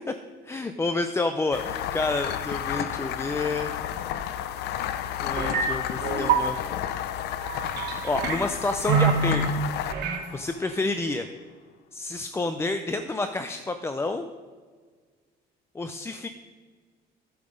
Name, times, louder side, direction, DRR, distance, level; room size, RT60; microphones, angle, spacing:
voice 1, 0.4-3.7 5.2-6.6 8.0-9.6 10.3-11.3 11.9-14.3 15.7-16.3, left 3 dB, 15° left, 8 dB, 0.4 m, -29 dB
sound 1, 1.5-10.9, left 10 dB, 80° left, 0.5 m, -32 dB
sound 2, 5.4-5.7 6.0-6.5 7.4-8.4 8.9-9.5 9.9-10.3, right 6 dB, 75° right, 1.0 m, -25 dB
11.0 x 5.8 x 5.1 m, 1.5 s
cardioid pair, 110°, 17 cm